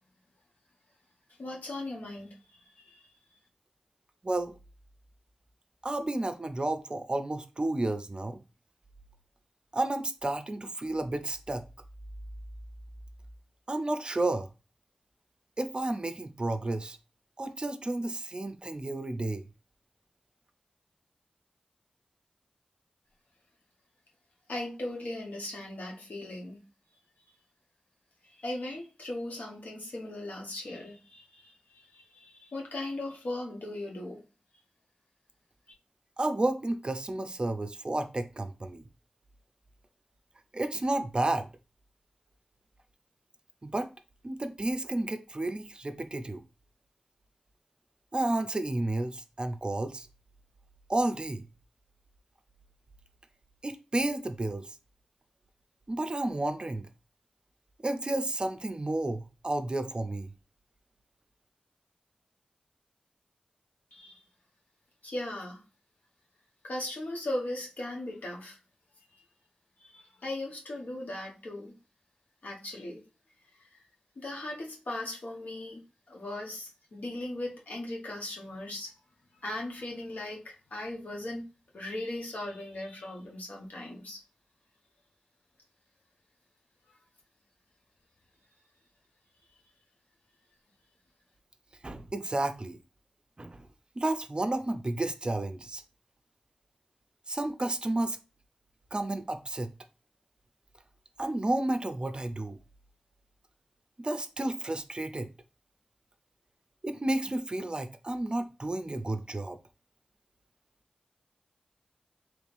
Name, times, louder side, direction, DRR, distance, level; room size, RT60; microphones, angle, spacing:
voice 1, 1.4-3.1 24.5-26.6 28.2-34.2 63.9-64.2 65.0-65.6 66.6-68.6 69.1-69.2 69.8-71.7 72.4-73.0 73.6-73.8 74.2-75.8 76.1-78.9 79.4-81.4 81.7-84.2, left 1 dB, 80° left, 1.0 m, -38 dB
voice 2, 5.8-8.4 9.7-11.6 13.7-14.5 15.6-17.0 17.4-19.4 36.2-38.8 40.5-41.5 43.6-43.9 44.2-46.4 48.1-50.1 50.9-51.5 53.6-54.7 55.9-56.9 57.8-60.3 91.8-92.8 93.4-93.7 94.0-95.8 97.3-98.2 98.9-99.7 101.2-102.6 104.0-105.3 106.8-109.6, right 2 dB, 35° right, 0.4 m, -31 dB
3.2 x 3.1 x 2.5 m
wide cardioid pair, 60°, 3 cm